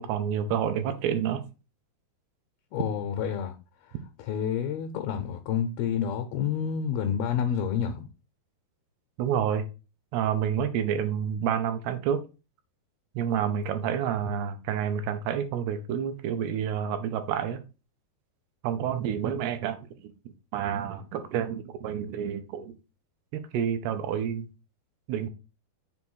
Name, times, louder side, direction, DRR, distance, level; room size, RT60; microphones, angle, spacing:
voice 1, 0.0-1.4 9.2-9.7 10.1-12.2 13.2-17.6 18.6-20.1 20.5-22.7 23.3-24.5 25.1-25.3, right 8 dB, 75° right, 2.7 m, -29 dB
voice 2, 2.7-3.6 3.8-8.1, left 8 dB, 75° left, 2.4 m, -29 dB
7.0 x 3.5 x 6.2 m
omnidirectional pair, 4.9 m